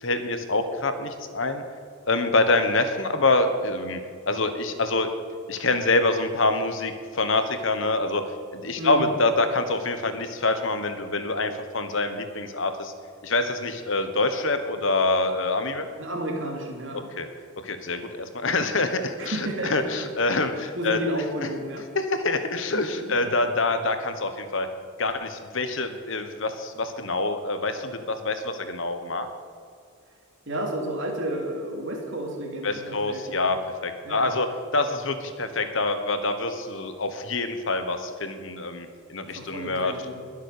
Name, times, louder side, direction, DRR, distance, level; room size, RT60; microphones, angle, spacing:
voice 1, 0.0-1.6 2.1-4.0 4.3-5.1 5.5-12.9 13.2-15.9 17.2-17.3 17.6-21.0 21.9-24.7 25.0-29.3 32.6-33.6 33.8-39.9, left 2 dB, 60° left, 8 dB, 1.2 m, -26 dB
voice 2, 8.8-9.1 16.0-17.1 19.2-20.0 20.7-21.9 22.7-23.3 30.5-33.5 34.0-34.3 39.3-40.2, right 1 dB, 60° right, 1 dB, 2.7 m, -31 dB
21.5 x 7.5 x 6.7 m, 2.3 s
head